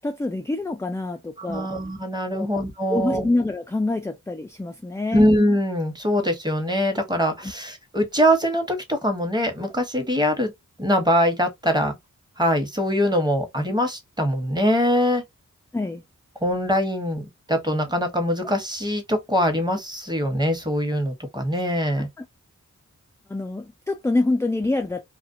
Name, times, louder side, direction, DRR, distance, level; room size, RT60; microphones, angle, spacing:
voice 1, 0.0-1.7 2.3-2.5 2.9-5.3 15.7-16.0 22.2-22.3 23.3-25.1, left 2 dB, 10° left, 0.3 m, -26 dB
voice 2, 1.4-3.3 5.1-10.5 10.8-12.0 12.4-15.2 16.4-17.2 17.5-22.1, equal, 15° right, 1.0 m, -23 dB
2.4 x 2.1 x 2.5 m
cardioid pair, 45°, 32 cm